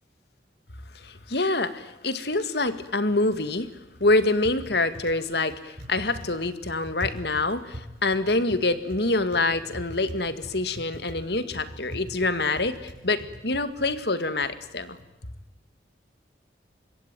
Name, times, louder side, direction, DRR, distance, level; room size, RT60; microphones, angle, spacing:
voice 1, 0.9-3.7 4.0-15.0, left 2 dB, 70° left, 12 dB, 2.1 m, -26 dB
Typing, 2.7-15.1, equal, 50° right, 7.3 m, -44 dB
25.5 x 22.5 x 9.2 m, 0.97 s
head